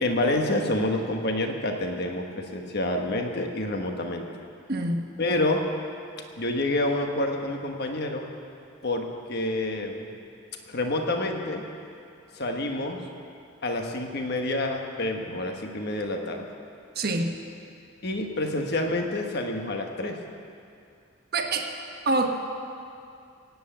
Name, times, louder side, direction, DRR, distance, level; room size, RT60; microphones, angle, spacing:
voice 1, 0.0-4.2 5.2-5.6 6.4-8.3 8.8-10.1 10.7-11.6 12.3-13.0 13.6-16.5 18.0-20.2, left 1 dB, 50° left, 3 dB, 1.3 m, -28 dB
voice 2, 4.7-5.1 16.9-17.3 21.3-21.7 22.0-22.4, right 2 dB, 50° right, 3 dB, 1.2 m, -25 dB
17.0 x 8.2 x 8.8 m, 2.5 s
head